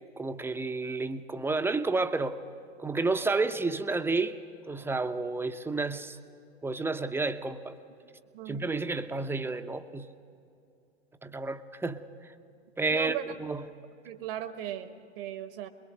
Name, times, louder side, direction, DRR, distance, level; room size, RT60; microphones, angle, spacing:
voice 1, 0.2-2.4 2.8-4.4 4.7-6.2 6.6-7.8 8.5-10.1 11.2-12.0 12.8-13.6, right 3 dB, 5° right, 9 dB, 0.8 m, -30 dB
voice 2, 12.9-13.2 14.0-15.7, right 11 dB, 55° right, 10 dB, 1.2 m, -37 dB
23.5 x 22.0 x 6.7 m, 2.6 s
figure-of-eight pair, 90°, 34 cm